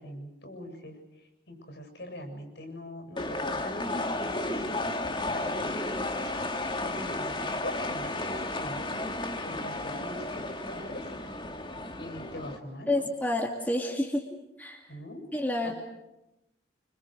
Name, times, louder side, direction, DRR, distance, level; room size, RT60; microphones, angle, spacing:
voice 1, 0.0-4.8 5.1-6.4 6.8-8.9 9.4-11.1 12.0-13.0 14.9-15.2 15.6-15.7, left 1 dB, 70° left, 5 dB, 7.7 m, -43 dB
sound 1, 3.2-12.6, left 2 dB, 25° left, 1.8 m, -33 dB
voice 2, 12.9-14.2 14.6-14.8 15.3-15.7, left 1 dB, 10° left, 1 dB, 2.6 m, -29 dB
27.0 x 26.0 x 6.5 m, 0.92 s
head